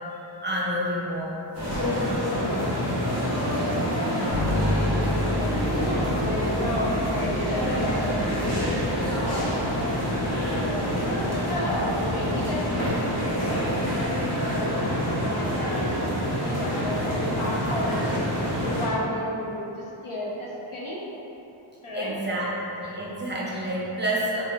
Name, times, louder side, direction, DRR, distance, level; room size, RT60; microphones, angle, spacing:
voice 1, 0.4-1.4 1.7-2.3 21.9-22.5 22.8-24.4, right 1 dB, 20° right, -7 dB, 0.7 m, -29 dB
sound 1, 1.5-18.9, equal, 30° left, 0.9 m, -26 dB
voice 2, 4.3-8.6 9.1-9.5 10.0-16.1 16.4-18.2 18.7-21.0 21.8-22.2, equal, 80° left, -5 dB, 0.7 m, -33 dB
Bass guitar, 4.3-14.0, left 1 dB, 55° left, 1.1 m, -33 dB
2.8 x 2.3 x 3.9 m, 2.9 s
wide cardioid pair, 45°, 49 cm